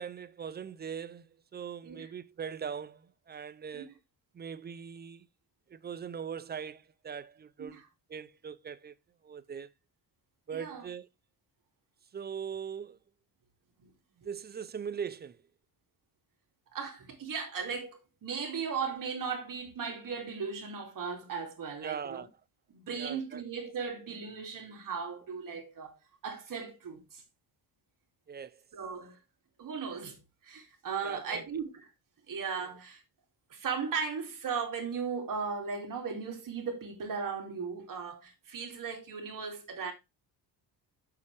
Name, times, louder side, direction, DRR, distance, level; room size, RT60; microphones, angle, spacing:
voice 1, 0.0-3.9 4.3-5.3 5.7-7.8 8.1-8.9 9.2-9.7 10.5-11.1 12.1-13.0 14.2-15.4 21.8-22.3 23.0-23.4 28.3-28.6 31.0-31.4, right 7 dB, 25° right, 0.5 m, -40 dB
voice 2, 10.5-10.9 13.8-13.9 16.7-22.2 22.7-27.2 28.7-29.2 29.6-30.2 30.4-31.9 32.3-33.0 33.5-39.9, right 5 dB, 50° right, 2.7 m, -37 dB
8.4 x 6.8 x 3.3 m
cardioid pair, 135°, 43 cm